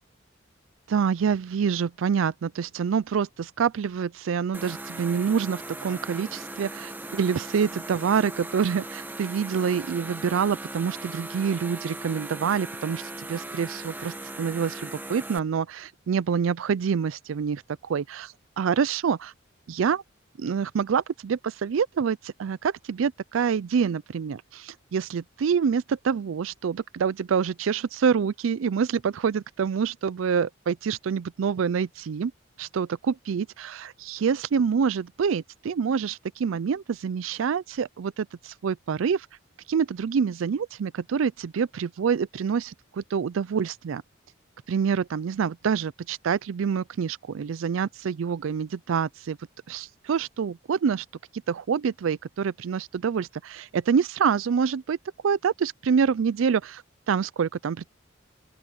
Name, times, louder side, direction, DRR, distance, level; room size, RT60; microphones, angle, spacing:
voice 1, 0.9-19.3 19.7-20.0 20.4-32.3 32.6-39.3 39.7-44.0 44.7-49.4 49.7-51.1 51.5-55.0 55.2-56.8 57.1-57.9, right 6 dB, 80° right, 0.4 m, -26 dB
sound 1, 4.5-15.4, right 2 dB, 10° right, 1.1 m, -38 dB
open air
head